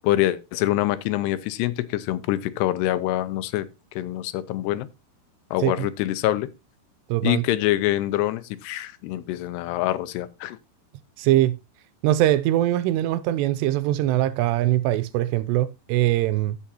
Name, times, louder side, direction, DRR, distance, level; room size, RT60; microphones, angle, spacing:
voice 1, 0.0-3.7 3.9-4.9 5.5-6.5 7.2-10.6, left 14 dB, 85° left, 2.7 m, -25 dB
voice 2, 7.1-7.4 11.2-11.6 12.0-16.6, right 14 dB, 85° right, 2.8 m, -22 dB
15.5 x 5.8 x 2.8 m
omnidirectional pair, 4.8 m